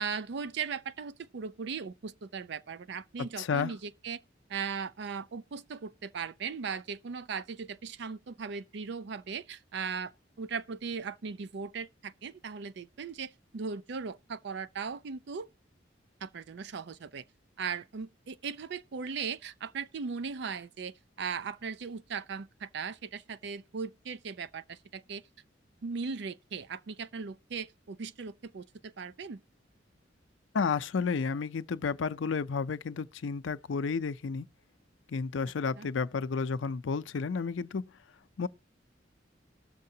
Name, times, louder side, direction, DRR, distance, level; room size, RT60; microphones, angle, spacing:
voice 1, 0.0-4.2 4.5-15.5 16.2-17.2 17.6-25.2 25.8-29.4 35.8-35.9, right 5 dB, 65° right, 0.4 m, -38 dB
voice 2, 3.4-3.7 30.5-34.5 35.1-37.9 38.4-38.5, left 5 dB, 90° left, 0.5 m, -31 dB
19.0 x 6.6 x 2.7 m
head